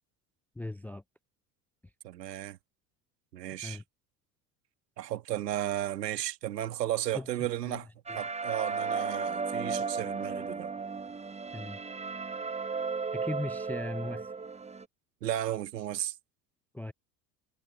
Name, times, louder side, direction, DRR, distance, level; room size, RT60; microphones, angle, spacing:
voice 1, 0.6-1.0 3.6-3.8 7.1-7.3 7.7-7.8 8.1-8.2 11.5-11.8 13.1-14.3 16.7-16.9, left 2 dB, 5° left, 0.4 m, -37 dB
voice 2, 2.0-2.6 3.3-3.8 5.0-7.9 8.2-10.7 15.2-16.1, right 13 dB, 80° right, 2.0 m, -34 dB
sound 1, 8.1-14.9, right 5 dB, 15° right, 1.0 m, -35 dB
figure-of-eight pair, 65°, 49 cm